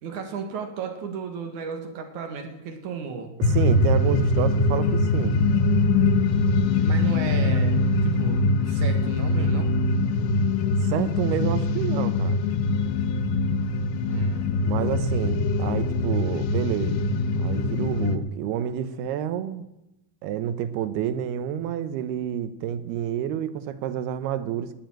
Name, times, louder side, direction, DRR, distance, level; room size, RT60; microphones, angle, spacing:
voice 1, 0.0-3.3 6.8-9.7 14.0-14.5, right 5 dB, 55° right, 5 dB, 2.9 m, -34 dB
sound 1, 3.4-18.2, left 3 dB, 85° left, 3.0 m, -23 dB
voice 2, 3.4-5.4 10.7-12.4 14.6-17.0 17.4-19.7 20.2-24.7, right 10 dB, 85° right, 12 dB, 3.0 m, -29 dB
18.5 x 7.1 x 9.0 m, 0.90 s
omnidirectional pair, 4.4 m